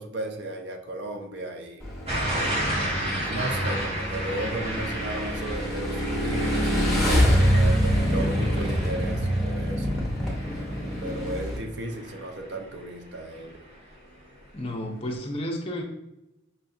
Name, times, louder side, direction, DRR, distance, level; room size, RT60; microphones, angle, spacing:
voice 1, 0.0-1.9 3.2-10.0 11.0-13.6, right 2 dB, 55° right, 4 dB, 0.4 m, -35 dB
Motorcycle / Engine, 1.8-11.6, equal, ahead, 0.8 m, -26 dB
sound 1, 2.1-12.9 13.3-13.7, right 1 dB, 30° right, 0.9 m, -33 dB
voice 2, 14.5-15.8, equal, 30° left, 1 dB, 0.5 m, -31 dB
5.5 x 2.4 x 2.7 m, 0.91 s
head